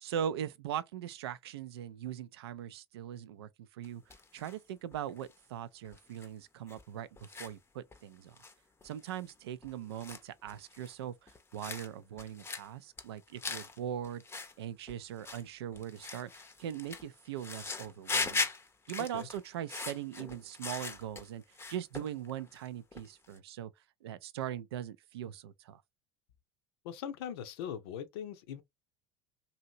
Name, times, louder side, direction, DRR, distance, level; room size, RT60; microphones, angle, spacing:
voice 1, 0.0-4.0 4.3-8.4 8.8-14.2 14.6-18.5 18.9-21.4 21.7-23.7 24.0-25.8, right 10 dB, 75° right, 0.4 m, -40 dB
sound 1, 3.8-4.6 4.9-5.3 5.8-6.3 6.7-6.8 7.2-7.5 7.9-8.0 8.4-8.5 8.8-9.3 9.6-10.9 11.3-11.9 12.2-12.7 13.0-13.8 14.0-14.5 14.9-15.4 15.7-21.3 21.5-22.7 22.9-23.4, left 4 dB, 20° left, 0.6 m, -40 dB
voice 2, 26.8-28.6, left 9 dB, 70° left, 0.6 m, -40 dB
2.8 x 2.8 x 2.6 m
hypercardioid pair, 75°, 13 cm